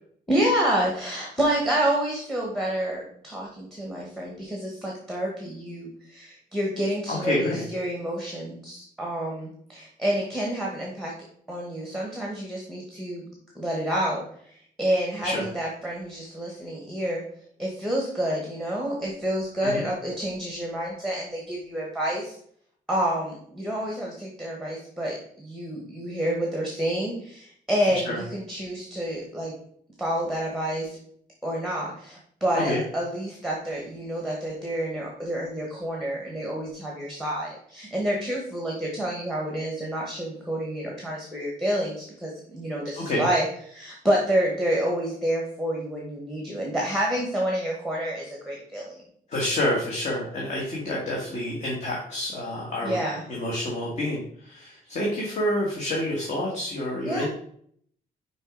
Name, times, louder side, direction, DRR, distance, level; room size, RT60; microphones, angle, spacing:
voice 1, 0.3-11.1 11.5-13.3 13.5-17.2 17.6-22.4 22.9-29.5 30.0-31.0 31.4-49.0 52.8-53.2 57.0-57.3, right 1 dB, ahead, -2 dB, 1.1 m, -28 dB
voice 2, 7.1-7.6 15.2-15.4 19.6-19.8 28.0-28.2 32.5-32.8 43.0-43.2 49.3-53.0 53.3-57.3, left 1 dB, 45° left, -4 dB, 1.6 m, -28 dB
6.3 x 4.6 x 3.8 m, 0.63 s
wide cardioid pair, 180°, 17 cm